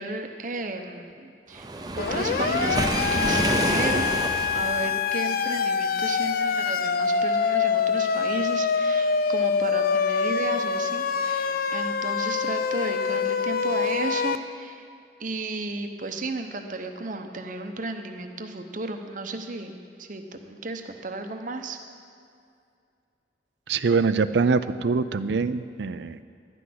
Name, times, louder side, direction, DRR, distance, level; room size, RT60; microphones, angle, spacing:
voice 1, 0.0-1.7 2.0-4.1 4.5-14.9 15.2-21.8, right 2 dB, 45° right, 6 dB, 0.8 m, -34 dB
Waves surf, 1.6-4.9, right 1 dB, 20° right, 0.6 m, -27 dB
Siren, 2.0-14.4, left 6 dB, 55° left, 0.4 m, -25 dB
voice 2, 23.7-26.2, right 4 dB, 70° right, 13 dB, 0.4 m, -24 dB
11.5 x 6.2 x 9.3 m, 2.3 s
head